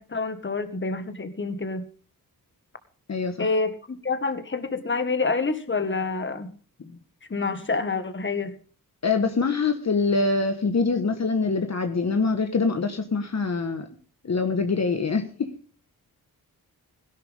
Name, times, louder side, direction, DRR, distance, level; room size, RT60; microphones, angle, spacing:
voice 1, 0.0-1.8 3.4-6.5 7.3-8.5, left 3 dB, 30° left, 9 dB, 1.8 m, -27 dB
voice 2, 3.1-3.5 6.8-6.9 9.0-13.9 14.2-15.5, left 4 dB, 45° left, 6 dB, 1.5 m, -24 dB
16.5 x 12.0 x 3.6 m, 0.40 s
wide cardioid pair, 95°, 36 cm